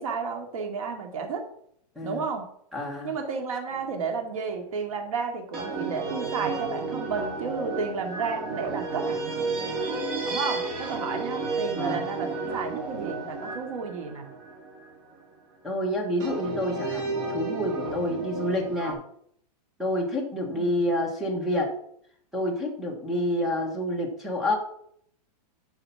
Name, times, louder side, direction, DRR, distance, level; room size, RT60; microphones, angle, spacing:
voice 1, 0.0-1.4 2.0-2.4 3.0-9.2 10.2-14.3 20.5-20.7, right 5 dB, 55° right, 4 dB, 2.4 m, -32 dB
voice 2, 2.7-3.1 11.8-12.0 15.6-19.0 19.8-21.8 22.3-24.6, left 1 dB, ahead, 0 dB, 1.3 m, -28 dB
sound 1, 3.7-4.2 5.5-15.2 16.2-18.9, right 3 dB, 30° right, 2.4 m, -32 dB
11.5 x 4.9 x 5.8 m, 0.67 s
supercardioid pair, 180°, 21 cm